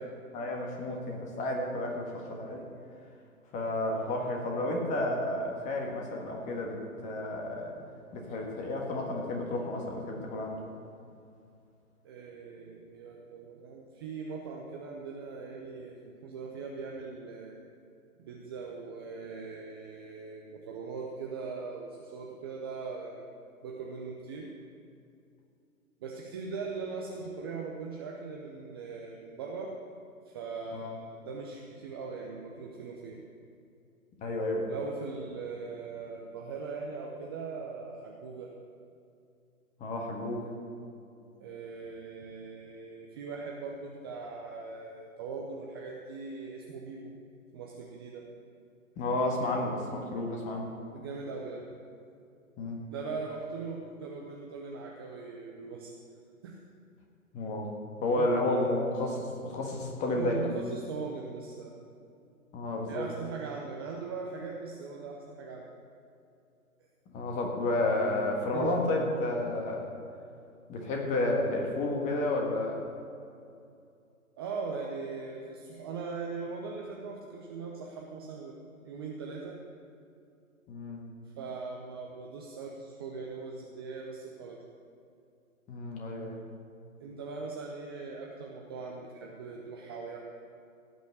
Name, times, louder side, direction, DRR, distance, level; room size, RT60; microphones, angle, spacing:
voice 1, 0.3-2.6 3.5-7.7 8.1-10.6 30.7-30.9 34.2-34.7 39.8-40.5 49.0-50.7 52.6-52.8 57.3-57.7 58.0-60.5 62.5-63.0 67.1-69.9 70.7-72.8 80.7-81.0 85.7-86.4, left 2 dB, 15° left, 1 dB, 1.6 m, -31 dB
voice 2, 12.0-17.6 18.2-23.3 23.6-24.5 26.0-29.7 30.3-33.2 34.7-38.5 41.4-47.1 47.5-48.3 50.9-51.7 52.9-55.9 56.4-56.6 58.1-58.7 60.2-61.8 62.9-65.7 68.5-68.8 74.4-79.6 81.4-84.6 87.0-90.2, right 4 dB, 15° right, -1 dB, 0.6 m, -40 dB
16.5 x 6.2 x 8.0 m, 2.5 s
figure-of-eight pair, 130°, 44 cm